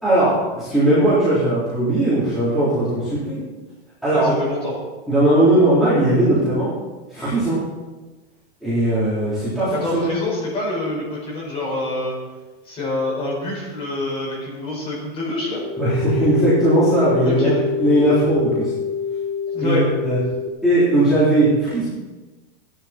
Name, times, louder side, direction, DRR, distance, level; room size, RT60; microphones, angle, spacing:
voice 1, 0.0-3.4 4.0-4.4 5.1-6.7 7.1-7.6 8.6-10.2 15.8-18.7 19.6-20.2 20.6-21.9, right 1 dB, ahead, -14 dB, 3.7 m, -18 dB
voice 2, 4.1-4.7 9.7-12.1 12.6-15.6 17.2-17.6 19.5-19.8, left 2 dB, 15° left, -4 dB, 5.1 m, -26 dB
sound 1, 15.5-20.5, left 6 dB, 50° right, 1.1 m, -25 dB
16.0 x 11.0 x 4.5 m, 1.2 s
supercardioid pair, 175°, 32 cm